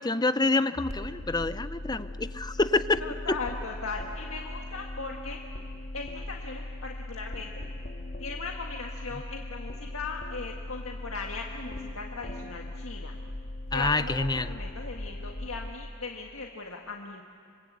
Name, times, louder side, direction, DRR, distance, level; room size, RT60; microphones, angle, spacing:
voice 1, 0.0-3.0 3.3-3.4 13.7-14.5, left 3 dB, 20° left, 12 dB, 0.7 m, -27 dB
sound 1, 0.8-15.7, left 1 dB, 50° left, 2.5 m, -39 dB
voice 2, 3.0-5.4 5.9-7.6 8.2-13.2 13.7-17.2, left 4 dB, 75° left, 1 dB, 1.7 m, -38 dB
27.5 x 25.5 x 8.3 m, 2.4 s
head